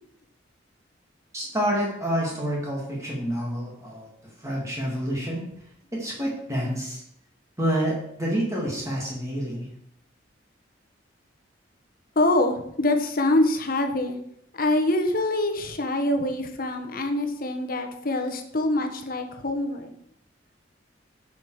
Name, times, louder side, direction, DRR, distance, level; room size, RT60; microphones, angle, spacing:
voice 1, 1.3-4.1 4.4-5.4 5.9-7.0 7.6-9.7, equal, 15° right, -3 dB, 2.2 m, -28 dB
voice 2, 12.2-14.2 14.5-19.9, left 1 dB, 50° left, 6 dB, 1.2 m, -25 dB
9.4 x 6.4 x 4.8 m, 0.72 s
head